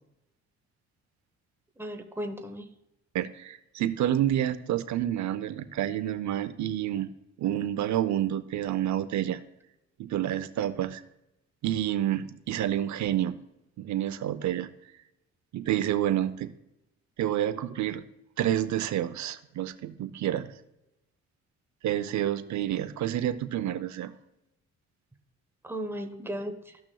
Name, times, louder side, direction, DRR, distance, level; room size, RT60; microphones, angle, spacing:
voice 1, 1.8-2.7 25.6-26.8, right 1 dB, 10° right, 5 dB, 1.0 m, -36 dB
voice 2, 3.1-7.1 7.4-9.4 10.0-11.0 11.6-13.3 13.8-14.7 15.5-16.5 17.2-18.0 18.4-20.5 21.8-24.1, right 12 dB, 70° right, 12 dB, 0.7 m, -29 dB
15.5 x 6.0 x 2.3 m, 0.90 s
cardioid pair, 90°, 30 cm